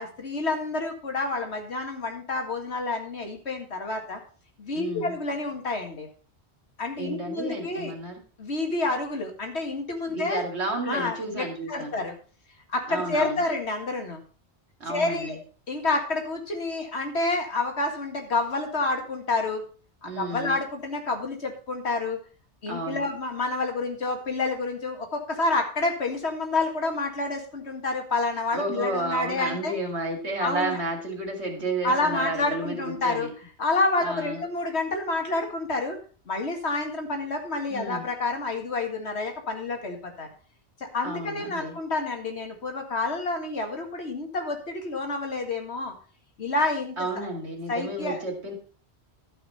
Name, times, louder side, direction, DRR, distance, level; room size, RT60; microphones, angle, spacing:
voice 1, 0.0-4.2 4.6-6.1 6.8-7.9 8.4-10.4 10.9-12.1 12.7-14.2 14.9-15.4 15.7-19.6 20.0-22.2 22.6-29.7 30.4-30.8 31.8-33.3 33.6-36.0 36.3-40.3 40.8-45.9 46.4-47.3 47.7-48.2, left 2 dB, 80° left, 4 dB, 2.3 m, -29 dB
voice 2, 4.7-5.2 7.0-8.2 10.1-12.0 12.9-13.4 14.8-15.4 20.0-20.6 22.7-23.1 28.5-33.3 34.0-34.4 37.7-38.1 41.0-41.8 47.0-48.5, right 1 dB, 85° right, 2 dB, 2.6 m, -32 dB
12.0 x 5.7 x 5.5 m, 0.39 s
omnidirectional pair, 1.1 m